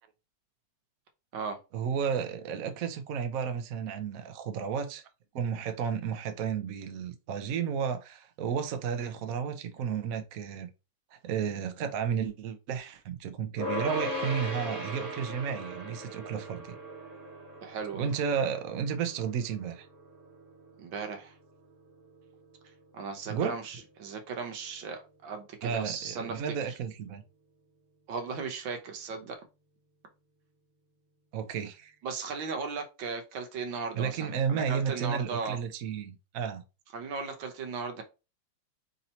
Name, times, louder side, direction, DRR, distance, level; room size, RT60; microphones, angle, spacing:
voice 1, 1.7-5.0 5.3-10.7 11.1-16.8 17.9-19.9 23.3-23.6 25.6-27.2 31.3-31.9 33.9-36.6, right 7 dB, 60° right, 0.9 m, -32 dB
sound 1, 13.6-24.9, equal, 25° right, 1.2 m, -40 dB
voice 2, 17.6-18.1 20.8-21.3 22.9-26.7 28.1-29.4 32.0-35.6 36.9-38.0, right 5 dB, 80° right, 1.7 m, -37 dB
3.9 x 2.8 x 4.3 m
omnidirectional pair, 2.1 m